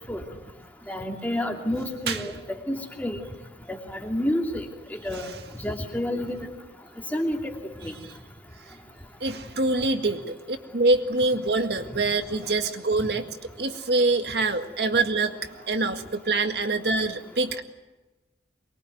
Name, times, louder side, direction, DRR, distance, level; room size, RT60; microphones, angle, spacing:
voice 1, 0.9-2.3 2.7-3.2 3.7-4.6 5.0-5.3 5.6-6.4 7.1-7.4 7.8-7.9 11.9-12.0, left 1 dB, 10° left, 1 dB, 2.9 m, -29 dB
voice 2, 9.2-13.3 13.6-17.6, right 2 dB, 65° right, 6 dB, 1.9 m, -25 dB
24.0 x 23.0 x 9.4 m, 1.1 s
head